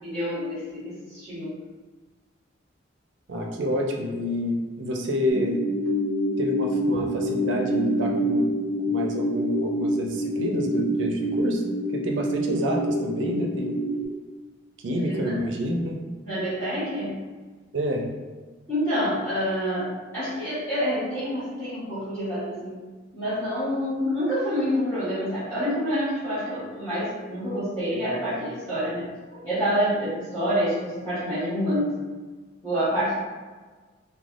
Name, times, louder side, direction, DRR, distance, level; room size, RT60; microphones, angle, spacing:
voice 1, 0.0-1.5 15.0-15.3 16.2-17.2 18.7-19.9 20.1-22.8 23.1-31.9 32.6-33.2, equal, 15° left, -16 dB, 1.1 m, -27 dB
voice 2, 3.3-5.6 6.4-8.5 8.9-11.6 11.9-13.8 14.8-16.0 17.7-18.0, left 1 dB, 70° right, 1 dB, 0.4 m, -28 dB
sound 1, 5.3-14.0, right 1 dB, 80° left, 0.8 m, -27 dB
3.2 x 2.2 x 2.4 m, 1.4 s
head